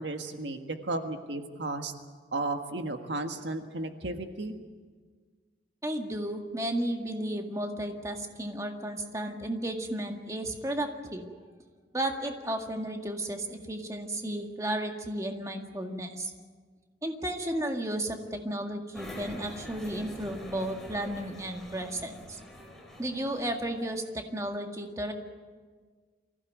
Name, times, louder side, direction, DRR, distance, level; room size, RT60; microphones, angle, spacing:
voice 1, 0.0-1.9 2.3-4.5, right 2 dB, 80° right, 6 dB, 1.6 m, -34 dB
voice 2, 5.8-11.3 11.9-16.3 17.0-22.4 23.0-25.1, right 1 dB, 20° right, 3 dB, 1.9 m, -33 dB
sound 1, 18.9-24.0, left 1 dB, ahead, 3.4 m, -45 dB
24.0 x 16.0 x 9.3 m, 1.5 s
head